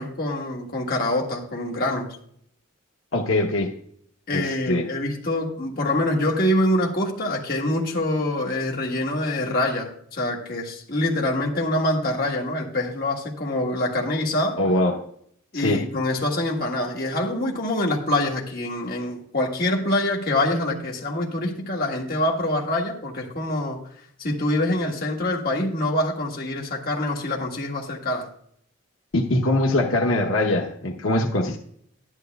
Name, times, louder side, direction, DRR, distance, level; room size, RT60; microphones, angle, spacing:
voice 1, 0.0-2.1 4.3-14.6 15.5-23.8 24.2-28.3, left 1 dB, 45° left, 1.6 m, -25 dB
voice 2, 3.1-3.7 4.3-4.9 14.6-15.0 15.5-15.8 29.1-31.6, left 2 dB, 85° left, 0.9 m, -22 dB
11.5 x 11.0 x 2.3 m
head